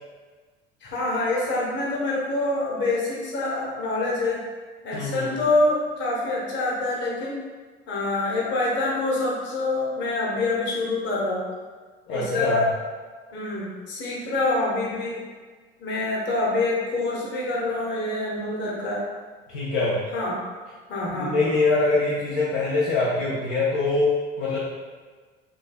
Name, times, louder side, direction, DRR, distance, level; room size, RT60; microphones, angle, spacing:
voice 1, 0.8-4.4 4.8-7.4 7.9-11.4 12.1-12.7 13.3-15.2 15.8-19.0 20.1-20.4 20.9-21.3, left 2 dB, 40° left, -4 dB, 1.1 m, -26 dB
voice 2, 4.9-5.3 12.1-12.5 19.5-20.0 21.1-24.6, left 3 dB, 60° left, -7 dB, 0.6 m, -24 dB
3.9 x 2.7 x 2.2 m, 1.4 s
figure-of-eight pair, 60°, 30 cm